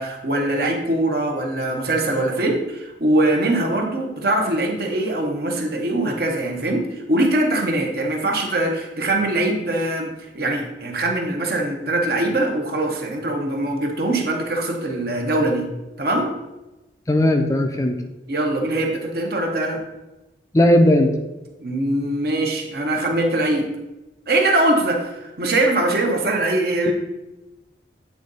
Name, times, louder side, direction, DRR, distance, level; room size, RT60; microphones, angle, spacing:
voice 1, 0.0-15.7 16.0-16.3 18.3-19.8 21.6-23.7 24.3-26.9, right 1 dB, 55° right, 2 dB, 1.0 m, -22 dB
voice 2, 17.1-18.0 20.5-21.1 26.9-27.0, left 1 dB, 15° left, 5 dB, 0.4 m, -16 dB
8.4 x 3.7 x 4.0 m, 1.0 s
head